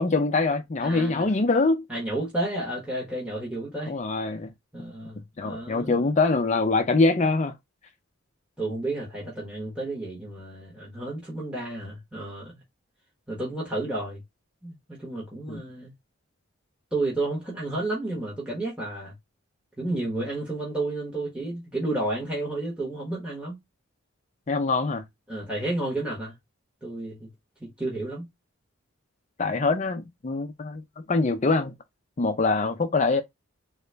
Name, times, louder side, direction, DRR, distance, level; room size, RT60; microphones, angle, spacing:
voice 1, 0.0-1.8 3.9-4.5 5.4-7.5 15.5-15.6 24.5-25.0 29.4-30.8 31.1-31.7 32.2-33.2, left 3 dB, 35° left, 0.4 m, -24 dB
voice 2, 0.8-1.2 1.9-4.0 4.7-6.1 8.6-12.5 13.3-14.2 14.6-15.9 16.9-19.1 19.8-23.6 25.3-26.3 26.8-27.3 27.6-28.3, right 2 dB, 5° right, 1.1 m, -31 dB
3.8 x 2.2 x 3.2 m
head